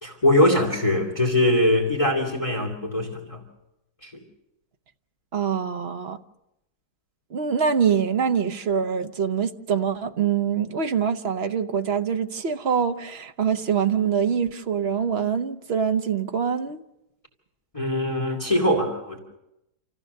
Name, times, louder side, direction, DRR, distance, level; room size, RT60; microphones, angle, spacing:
voice 1, 0.0-3.4 4.0-4.1 17.7-19.2, left 1 dB, 20° left, 2.7 m, -22 dB
voice 2, 5.3-6.2 7.3-16.8, right 7 dB, 45° right, 1.0 m, -24 dB
28.0 x 15.5 x 6.6 m
omnidirectional pair, 1.8 m